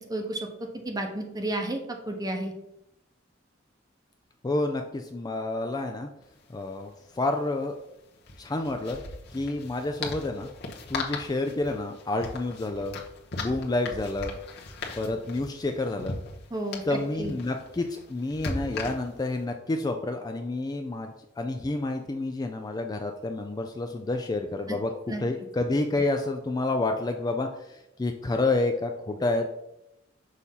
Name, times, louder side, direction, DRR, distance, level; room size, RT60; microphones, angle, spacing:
voice 1, 0.1-0.5 0.8-1.8 2.1-2.5 16.5-17.3 24.7-24.8 25.1-25.2, right 1 dB, 20° right, 3 dB, 0.8 m, -31 dB
voice 2, 4.4-6.1 6.5-7.8 8.4-9.0 9.3-10.5 10.9-13.0 13.3-14.4 15.0-16.2 16.9-29.5, left 2 dB, 20° left, 5 dB, 0.3 m, -29 dB
sound 1, 6.2-6.3 6.5-6.7 8.2-19.4, left 3 dB, 55° left, 1.0 m, -38 dB
6.4 x 2.7 x 5.5 m, 0.86 s
head